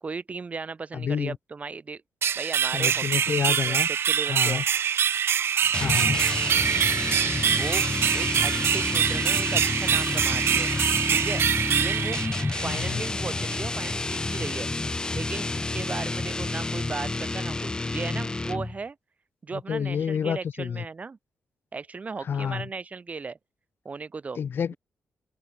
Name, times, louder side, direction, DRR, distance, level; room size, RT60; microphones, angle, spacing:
voice 1, 0.0-2.0 2.4-4.6 7.6-7.8 8.1-10.7 11.1-12.2 12.6-14.7 15.1-19.0 19.4-21.2 21.7-23.4 23.8-24.4, right 4 dB, 35° right, 3.1 m, -36 dB
voice 2, 0.9-1.4 2.7-3.9 4.3-4.6 5.8-6.2 12.6-13.0 19.5-20.8 22.3-22.7 24.4-24.7, left 7 dB, 55° left, 1.2 m, -29 dB
sound 1, 2.2-12.9, right 8 dB, 65° right, 2.7 m, -24 dB
sound 2, 5.7-18.8, left 2 dB, 20° left, 0.8 m, -29 dB
open air
cardioid pair, 110°, 4 cm